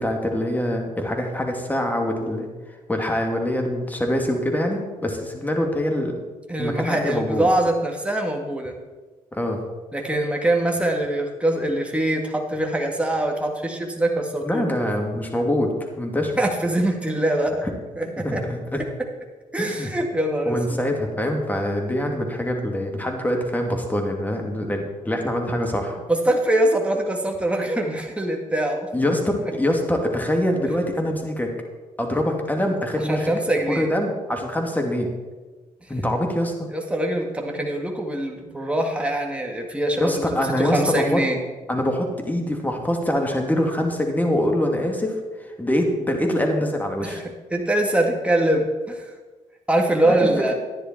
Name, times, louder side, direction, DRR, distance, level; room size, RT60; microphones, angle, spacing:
voice 1, 0.0-2.5 2.9-6.2 6.6-7.5 9.3-9.6 14.4-16.3 17.6-17.7 18.1-18.8 19.6-19.9 20.5-26.0 28.9-31.5 32.0-33.2 33.7-35.1 35.9-36.7 39.9-41.2 41.7-47.2 50.0-50.3, left 1 dB, 10° left, 2 dB, 2.6 m, -24 dB
voice 2, 6.5-8.7 9.9-14.7 16.4-17.6 18.0-18.4 19.5-20.8 26.1-28.9 33.1-33.9 36.7-41.4 47.0-47.2 47.5-49.1 49.7-50.5, right 1 dB, 10° right, 2 dB, 1.9 m, -23 dB
10.5 x 10.0 x 4.5 m, 1.3 s
hypercardioid pair, 50°, 16 cm